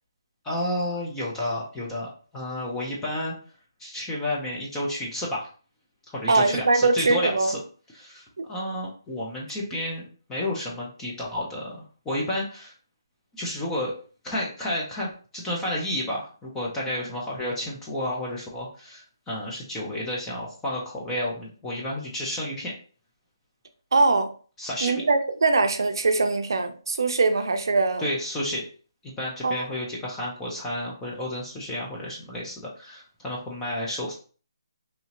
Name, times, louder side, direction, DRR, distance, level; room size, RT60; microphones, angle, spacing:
voice 1, 0.4-3.3 3.8-5.5 6.1-7.6 7.9-12.7 13.3-13.9 14.2-22.7 24.6-25.0 28.0-28.7 29.0-34.1, left 1 dB, 5° left, -4 dB, 0.3 m, -31 dB
voice 2, 6.3-7.6 23.9-24.3 24.8-28.1 29.4-29.7, right 3 dB, 55° right, 7 dB, 0.4 m, -22 dB
2.8 x 2.6 x 2.8 m, 0.39 s
hypercardioid pair, 180°, 3 cm